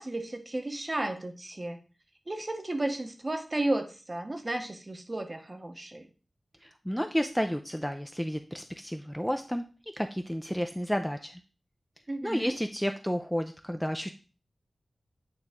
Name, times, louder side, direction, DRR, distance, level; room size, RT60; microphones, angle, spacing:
voice 1, 0.0-1.8 2.3-6.1 12.1-12.6, right 1 dB, 30° right, 7 dB, 0.8 m, -33 dB
voice 2, 6.6-9.6 9.9-11.4 12.2-14.1, equal, ahead, 6 dB, 0.4 m, -31 dB
8.8 x 3.0 x 3.5 m, 0.35 s
wide cardioid pair, 100°, 0 cm